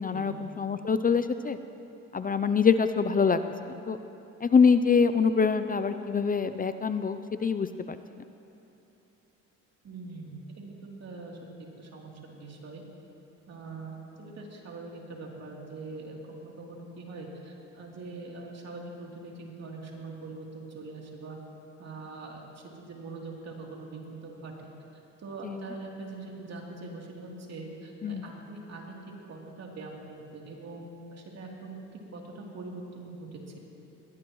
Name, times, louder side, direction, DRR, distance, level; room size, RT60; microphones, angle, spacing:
voice 1, 0.0-1.6 2.1-4.0 4.4-8.0 25.4-25.5 28.0-28.2, left 5 dB, 30° left, 10 dB, 0.5 m, -25 dB
voice 2, 9.8-11.4 11.8-12.8 13.5-21.4 21.8-24.7 25.2-31.8 32.1-33.6, right 3 dB, 55° right, -2 dB, 3.3 m, -42 dB
21.0 x 18.5 x 3.1 m, 2.8 s
cardioid pair, 90°, 30 cm